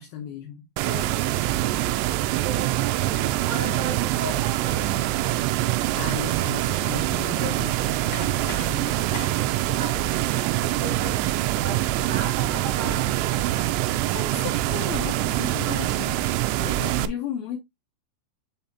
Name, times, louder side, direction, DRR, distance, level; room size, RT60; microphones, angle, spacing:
voice 1, 0.0-0.6 3.6-3.9 5.9-9.0 14.1-16.3 16.6-17.6, left 8 dB, 70° left, 2.4 m, -35 dB
voice 2, 0.8-1.5 2.4-5.1 8.8-9.1 9.6-13.9, right 4 dB, 55° right, 2.2 m, -37 dB
sound 1, 0.8-17.1, right 15 dB, 85° right, 2.7 m, -25 dB
sound 2, 4.6-13.0, left 5 dB, 50° left, 2.3 m, -46 dB
7.2 x 4.9 x 2.8 m
omnidirectional pair, 5.0 m